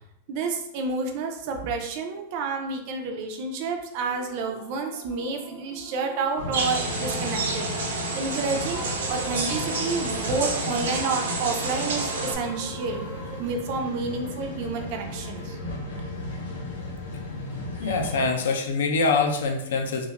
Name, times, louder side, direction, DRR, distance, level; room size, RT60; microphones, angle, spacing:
voice 1, 0.3-7.7 8.1-8.8 9.1-15.6 17.8-17.9, right 4 dB, 35° right, 3 dB, 0.3 m, -30 dB
sound 1, 3.9-14.8, right 2 dB, 10° left, 0.6 m, -42 dB
sound 2, 6.4-18.3, left 2 dB, 90° left, 0.8 m, -35 dB
sound 3, 6.5-12.3, right 3 dB, 85° right, 0.5 m, -30 dB
voice 2, 17.8-20.1, left 4 dB, 70° left, 4 dB, 0.5 m, -24 dB
2.4 x 2.4 x 2.8 m, 0.79 s
supercardioid pair, 175°, 0 cm